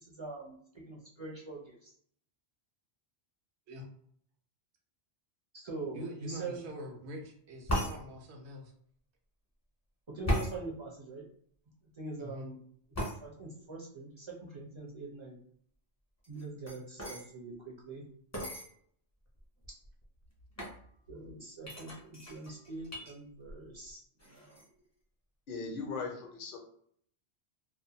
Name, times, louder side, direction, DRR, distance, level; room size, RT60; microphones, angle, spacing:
voice 1, 0.1-0.6 0.9-1.9 5.5-6.7 10.1-11.2 12.0-12.6 13.2-15.3 16.3-18.0 21.1-24.6, right 3 dB, 40° right, -3 dB, 0.4 m, -43 dB
voice 2, 5.9-8.7 12.2-12.5, equal, 80° right, 2 dB, 0.9 m, -44 dB
sound 1, 7.7-8.0 10.2-10.5 12.9-13.2 16.2-17.2 18.3-18.7 19.4-19.5 19.6-20.0 20.6-20.8 21.6-23.1 23.5-23.9 24.2-24.6, equal, 20° left, 0.4 m, -35 dB
voice 3, 25.5-26.6, left 4 dB, 55° left, 2 dB, 0.7 m, -38 dB
2.4 x 2.1 x 2.7 m, 0.63 s
omnidirectional pair, 1.1 m